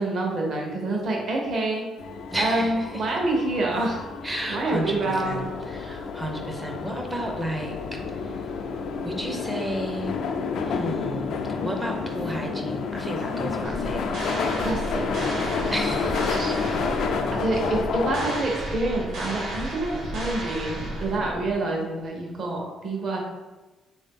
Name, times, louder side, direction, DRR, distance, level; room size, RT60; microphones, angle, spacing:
voice 1, 0.0-1.8 2.4-4.0 4.5-5.5 14.6-16.5 17.3-23.2, right 2 dB, 50° right, -1 dB, 0.9 m, -27 dB
sound 1, 2.0-18.4, left 5 dB, 70° left, 0.4 m, -30 dB
voice 2, 2.3-2.8 4.2-8.5 9.0-10.1 10.6-11.3 11.6-14.2 15.7-16.6, right 1 dB, 10° right, 2 dB, 0.5 m, -33 dB
sound 2, 13.6-21.5, right 1 dB, 85° right, 1.4 m, -33 dB
3.6 x 2.7 x 3.6 m, 1.2 s
cardioid pair, 130°, 0 cm